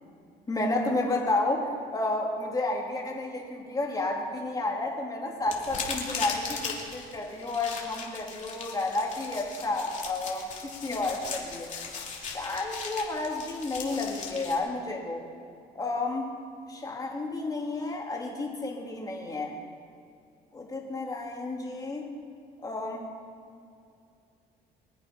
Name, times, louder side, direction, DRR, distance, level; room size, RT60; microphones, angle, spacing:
voice 1, 0.5-11.7 12.2-15.3 15.7-16.4 16.7-19.6 20.5-22.1 22.6-23.1, left 2 dB, 20° left, -1 dB, 3.2 m, -31 dB
sound 1, 5.5-14.6, left 5 dB, 45° left, 3.2 m, -38 dB
24.5 x 8.8 x 5.6 m, 2.4 s
cardioid pair, 110°, 17 cm